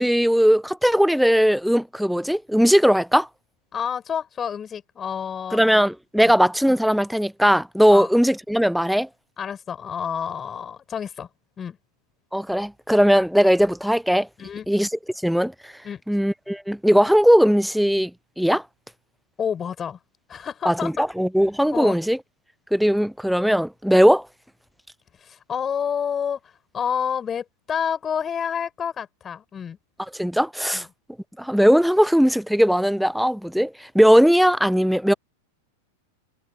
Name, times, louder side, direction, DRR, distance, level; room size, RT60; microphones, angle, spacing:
voice 1, 0.0-3.3 5.5-9.1 12.3-14.3 14.7-14.9 15.2-15.7 16.1-18.1 18.4-18.6 20.6-22.2 22.7-24.3 30.1-30.9 31.4-35.1, equal, ahead, 0.7 m, -19 dB
voice 2, 3.7-5.6 6.2-6.3 7.9-8.1 9.4-11.3 11.6-11.8 14.4-14.7 15.8-16.0 19.4-20.0 20.3-20.9 21.7-22.0 25.2-26.4 26.7-29.8 30.7-30.9, left 7 dB, 20° left, 7.6 m, -29 dB
figure-of-eight pair, 90°, 0 cm